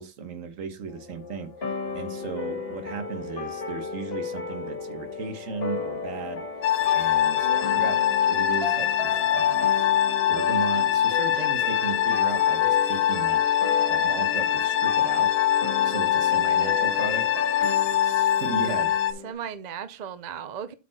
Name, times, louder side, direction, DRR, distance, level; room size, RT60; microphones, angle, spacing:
voice 1, 0.0-6.4 6.9-9.7 10.3-13.4 13.9-15.3 15.8-17.3 18.0-18.9, right 5 dB, 75° right, 1.4 m, -36 dB
sound 1, 0.9-17.9, left 6 dB, 65° left, 1.6 m, -44 dB
sound 2, 1.6-19.3, left 4 dB, 45° left, 1.8 m, -34 dB
sound 3, 6.6-19.1, left 10 dB, 80° left, 1.1 m, -23 dB
voice 2, 7.4-8.2 19.2-20.7, right 8 dB, 50° right, 0.5 m, -37 dB
8.1 x 4.3 x 4.4 m
omnidirectional pair, 1.4 m